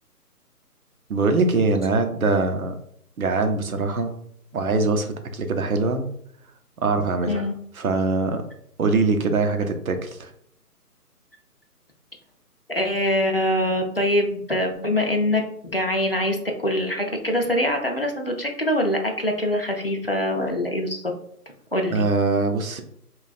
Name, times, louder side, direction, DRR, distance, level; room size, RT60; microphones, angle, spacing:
voice 1, 1.1-2.7 3.2-4.1 4.5-6.0 6.8-7.5 7.8-8.4 8.8-10.3 21.9-22.8, right 3 dB, 60° right, 6 dB, 0.7 m, -22 dB
voice 2, 12.7-21.0 21.7-22.0, left 1 dB, 40° left, 1 dB, 0.4 m, -24 dB
3.1 x 2.3 x 4.0 m, 0.70 s
figure-of-eight pair, 165°, 47 cm